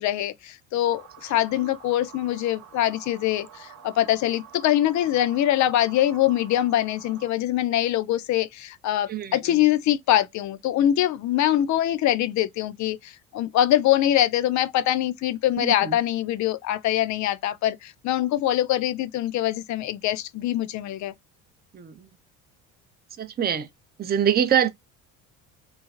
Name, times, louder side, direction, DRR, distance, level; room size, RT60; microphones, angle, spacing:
voice 1, 0.0-21.1, left 12 dB, 45° left, 0.5 m, -23 dB
sound 1, 0.9-7.3, right 8 dB, 40° right, 1.0 m, -47 dB
voice 2, 9.1-9.6 15.6-16.0 21.7-22.1 23.2-23.7 24.0-24.7, right 9 dB, 25° right, 0.5 m, -24 dB
3.1 x 2.0 x 2.4 m
hypercardioid pair, 65°, 40 cm